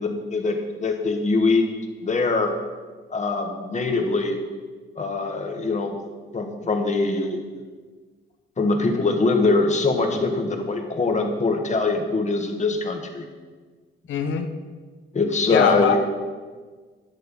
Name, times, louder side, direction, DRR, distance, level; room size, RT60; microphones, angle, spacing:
voice 1, 0.0-1.6 2.0-2.5 3.1-4.4 5.0-6.0 6.3-7.4 8.6-13.2 15.1-16.0, left 3 dB, 35° left, 4 dB, 1.5 m, -23 dB
voice 2, 14.1-14.5 15.5-16.0, left 7 dB, 75° left, 7 dB, 1.0 m, -21 dB
10.5 x 6.7 x 5.3 m, 1.5 s
cardioid pair, 90°, 20 cm